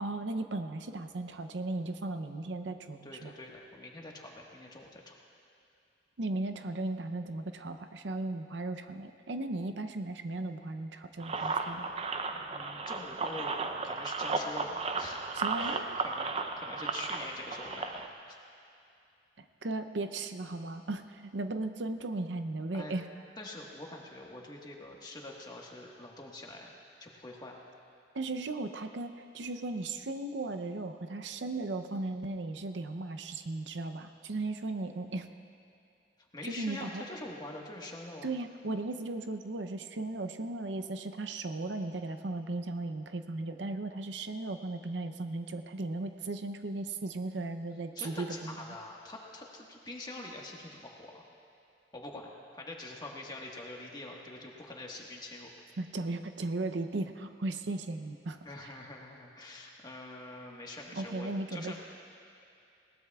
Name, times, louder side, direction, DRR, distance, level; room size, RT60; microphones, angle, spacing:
voice 1, 0.0-3.3 6.2-11.9 15.3-16.0 19.4-23.1 28.1-35.3 36.4-37.0 38.2-48.7 55.8-58.4 58.6-58.7 60.9-61.8, right 2 dB, 80° right, 8 dB, 0.6 m, -36 dB
voice 2, 3.0-5.1 11.4-11.6 12.5-13.6 13.8-15.2 15.6-16.3 16.6-17.9 18.3-18.4 22.7-22.9 23.4-26.7 27.0-27.6 36.3-38.3 48.0-51.2 51.9-55.5 58.4-61.8, left 2 dB, 25° left, -1 dB, 1.4 m, -45 dB
sound 1, 11.2-18.1, right 4 dB, 35° right, 0.6 m, -34 dB
20.0 x 18.5 x 2.4 m, 2.6 s
head